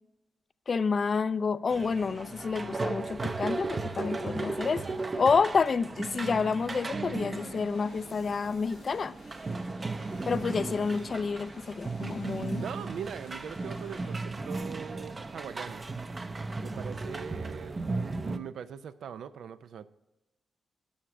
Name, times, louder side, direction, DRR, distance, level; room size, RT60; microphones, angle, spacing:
voice 1, 0.7-9.2 10.3-12.6, left 5 dB, 50° left, 16 dB, 0.4 m, -29 dB
sound 1, 1.7-18.4, right 3 dB, 35° right, 0.6 m, -36 dB
sound 2, 7.3-14.2, left 4 dB, 85° left, 1.6 m, -58 dB
voice 2, 12.6-15.8 16.6-19.9, right 8 dB, 85° right, 12 dB, 0.4 m, -41 dB
11.5 x 5.8 x 6.2 m, 1.0 s
cardioid pair, 75°, 0 cm